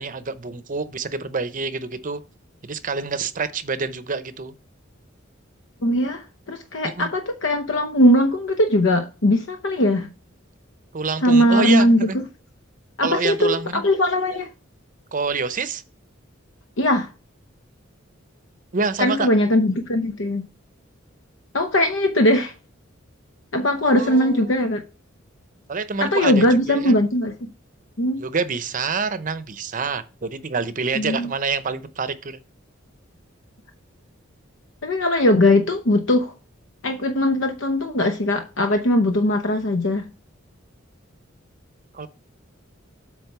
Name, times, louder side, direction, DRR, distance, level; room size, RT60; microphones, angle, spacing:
voice 1, 0.0-2.2 2.6-4.5 6.8-7.1 10.9-12.2 13.0-13.8 15.1-15.8 18.7-19.3 23.9-24.5 25.7-27.0 28.2-32.4 41.9-42.1, right 4 dB, 40° right, 0.7 m, -27 dB
voice 2, 5.8-10.1 11.2-12.1 13.0-14.5 16.8-17.1 19.0-20.5 21.5-22.5 23.5-24.8 26.0-27.5 28.0-28.2 31.0-31.3 34.8-36.3 36.8-40.1, left 1 dB, 65° left, 0.8 m, -20 dB
8.1 x 3.6 x 6.0 m
head